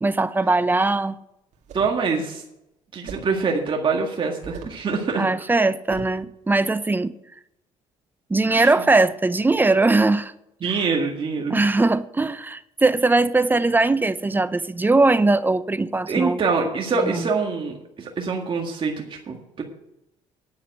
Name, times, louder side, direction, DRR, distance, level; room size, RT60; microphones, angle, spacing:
voice 1, 0.0-1.2 5.2-7.1 8.3-10.3 10.7-10.8 11.5-16.4 16.9-17.3, right 3 dB, 15° right, 0.7 m, -20 dB
sound 1, 1.5-2.0 3.1-3.4 4.4-4.8 5.9-6.2, right 5 dB, 65° right, 2.1 m, -38 dB
voice 2, 1.7-2.4 2.9-5.3 8.5-8.7 10.6-11.6 16.1-19.6, right 4 dB, 40° right, 1.8 m, -25 dB
9.8 x 7.2 x 7.8 m
supercardioid pair, 80°, 13 cm